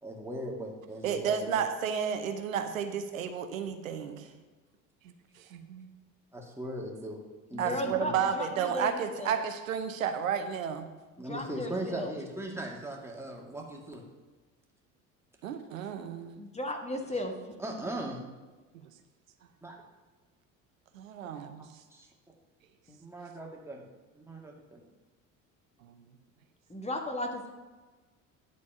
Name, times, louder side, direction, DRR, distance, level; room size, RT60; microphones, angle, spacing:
voice 1, 0.0-1.6 6.3-7.2 7.5-8.1 11.2-14.0 17.6-18.3 19.6-19.8 21.2-21.4 21.9-22.1 23.0-23.8 24.1-24.8, right 1 dB, 5° right, -1 dB, 2.2 m, -39 dB
voice 2, 1.0-4.3 5.0-5.9 7.6-10.9 15.4-16.3 18.8-18.9 20.9-21.7 25.8-26.0, right 7 dB, 85° right, 7 dB, 0.8 m, -32 dB
voice 3, 7.5-9.3 11.2-12.1 16.4-17.3 22.9-23.0 26.7-27.5, left 1 dB, 15° left, 3 dB, 1.5 m, -35 dB
10.0 x 4.2 x 6.7 m, 1.3 s
hypercardioid pair, 65°, 39 cm